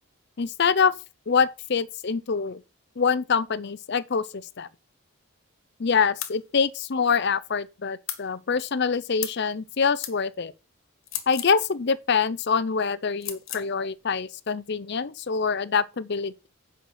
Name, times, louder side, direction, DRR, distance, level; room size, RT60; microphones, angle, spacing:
voice 1, 0.4-0.9 1.3-2.6 3.0-4.7 5.8-10.5 11.3-16.3, left 5 dB, 50° left, 0.5 m, -25 dB
sound 1, 6.2-6.4 8.1-8.3 9.2-9.4 10.0-10.2 11.0-11.6 13.2-13.7, left 12 dB, 65° left, 1.5 m, -34 dB
8.7 x 5.8 x 5.5 m
head